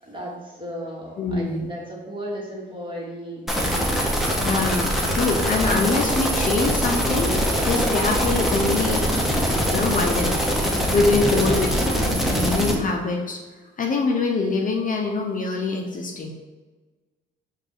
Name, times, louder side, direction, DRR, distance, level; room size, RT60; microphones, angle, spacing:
voice 1, 0.0-4.3 11.4-11.7, equal, 25° right, -4 dB, 1.5 m, -35 dB
voice 2, 1.2-1.7 4.4-9.1 9.7-13.4 13.8-16.3, left 3 dB, 40° left, 1 dB, 0.5 m, -24 dB
sound 1, 3.5-12.8, equal, ahead, 0.8 m, -23 dB
4.9 x 2.4 x 3.7 m, 1.3 s
cardioid pair, 90°, 20 cm